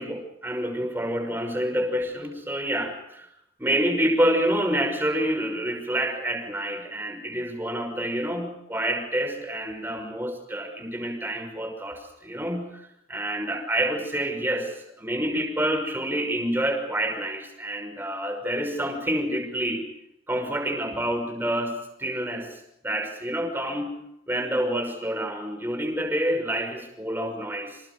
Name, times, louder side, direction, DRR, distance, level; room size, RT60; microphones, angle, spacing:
voice 1, 0.0-3.3 3.6-19.8 20.3-23.9 24.3-27.8, right 1 dB, 10° right, 4 dB, 5.8 m, -28 dB
28.5 x 27.0 x 5.2 m, 0.80 s
head